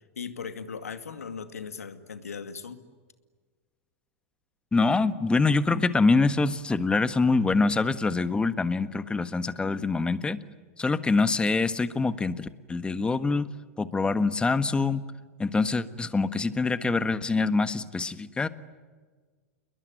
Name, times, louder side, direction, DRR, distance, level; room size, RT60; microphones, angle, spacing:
voice 1, 0.2-2.8, left 6 dB, 85° left, 9 dB, 2.3 m, -38 dB
voice 2, 4.7-10.4 10.8-13.5 13.8-15.0 15.4-18.5, left 3 dB, 10° left, 13 dB, 1.5 m, -25 dB
29.0 x 22.0 x 9.3 m, 1.5 s
hypercardioid pair, 100°, 8 cm